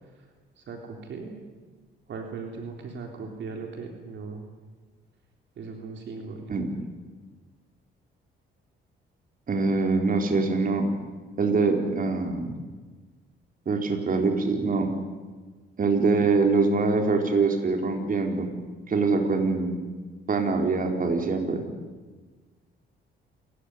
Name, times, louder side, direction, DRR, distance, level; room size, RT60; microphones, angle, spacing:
voice 1, 0.7-1.4 2.1-4.4 5.6-6.5, right 4 dB, 65° right, 2 dB, 3.5 m, -38 dB
voice 2, 9.5-10.9 11.4-12.5 13.7-14.9 15.8-18.5 18.9-19.8 20.3-21.6, right 4 dB, 45° right, 4 dB, 4.3 m, -24 dB
28.0 x 15.0 x 10.0 m, 1.4 s
cardioid pair, 90°, 20 cm